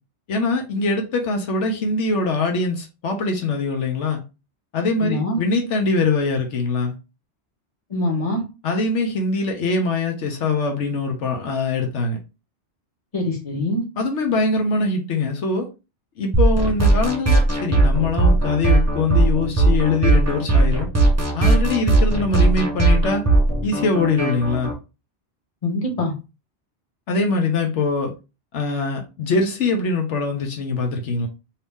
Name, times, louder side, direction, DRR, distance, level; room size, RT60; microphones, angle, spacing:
voice 1, 0.3-4.2 4.7-6.9 8.6-12.2 14.0-15.7 16.2-20.9 21.3-23.2 23.6-24.7 27.1-28.1 28.5-31.3, left 3 dB, 85° left, 1.1 m, -23 dB
voice 2, 5.0-5.4 7.9-8.4 13.1-13.8 25.6-26.1, left 1 dB, 30° left, 1.2 m, -23 dB
sound 1, 16.3-24.7, right 2 dB, 15° right, 0.6 m, -18 dB
2.8 x 2.7 x 3.4 m
omnidirectional pair, 1.2 m